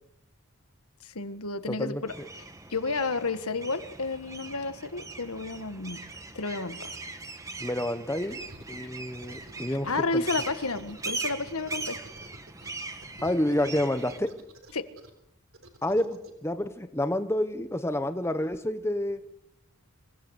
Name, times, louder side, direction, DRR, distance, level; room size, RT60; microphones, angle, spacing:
voice 1, 1.0-6.0 6.3-7.0 9.8-12.0 14.7-14.9, left 3 dB, 85° left, 10 dB, 1.7 m, -31 dB
voice 2, 1.7-2.0 7.6-8.4 8.7-9.9 10.1-10.2 13.2-14.3 15.8-19.2, left 1 dB, 10° left, 9 dB, 1.1 m, -29 dB
sound 1, 2.1-14.2, right 3 dB, 15° right, 1.4 m, -40 dB
sound 2, 8.1-8.9 9.1-12.7 13.0-15.1 15.5-16.3, right 2 dB, 65° right, 3.7 m, -49 dB
26.5 x 17.5 x 8.2 m, 0.83 s
head